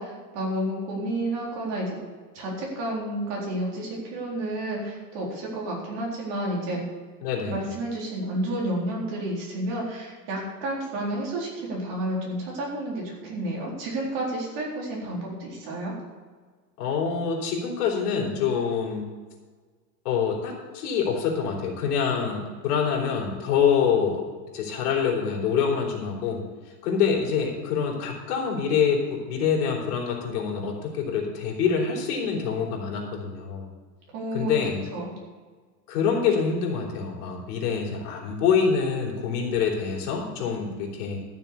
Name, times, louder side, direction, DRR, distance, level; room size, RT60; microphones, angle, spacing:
voice 1, 0.0-2.0 2.3-6.8 7.5-15.9 34.1-34.6 34.9-35.1, right 1 dB, 40° right, -3 dB, 4.1 m, -30 dB
voice 2, 7.2-7.6 16.8-19.1 20.1-24.2 24.5-26.4 26.8-33.7 34.3-34.8 35.9-41.2, left 6 dB, 65° left, -1 dB, 3.5 m, -26 dB
13.5 x 6.9 x 6.9 m, 1.5 s
supercardioid pair, 175°, 50 cm